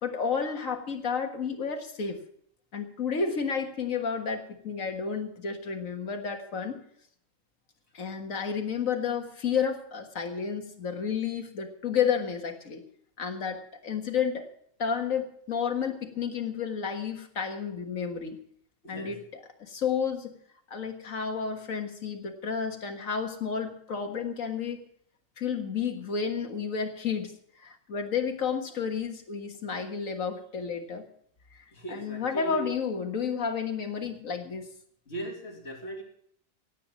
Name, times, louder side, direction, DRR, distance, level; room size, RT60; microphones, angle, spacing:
voice 1, 0.0-2.2 2.7-6.8 7.9-12.8 13.2-14.5 14.8-18.4 18.9-19.2 19.6-20.3 20.7-24.8 25.4-31.0 31.9-34.7, left 6 dB, 85° left, 5 dB, 2.0 m, -31 dB
voice 2, 18.8-19.2 31.7-32.7 35.1-36.0, right 1 dB, 55° left, 0 dB, 3.3 m, -38 dB
17.0 x 8.7 x 6.2 m, 0.65 s
omnidirectional pair, 1.4 m